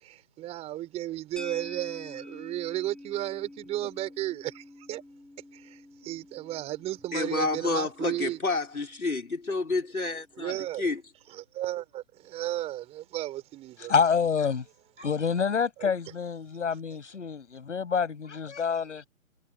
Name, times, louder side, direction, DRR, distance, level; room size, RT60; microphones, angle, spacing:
voice 1, 0.0-5.0 5.5-8.4 10.4-10.9 11.3-13.9 15.8-15.9, right 14 dB, 15° right, 4.9 m, -34 dB
sound 1, 1.4-9.8, left 2 dB, ahead, 5.2 m, -48 dB
voice 2, 7.1-11.0, left 3 dB, 80° left, 4.7 m, -29 dB
voice 3, 13.8-14.7 15.0-19.1, left 6 dB, 60° left, 7.8 m, -27 dB
figure-of-eight pair, 140°, 42 cm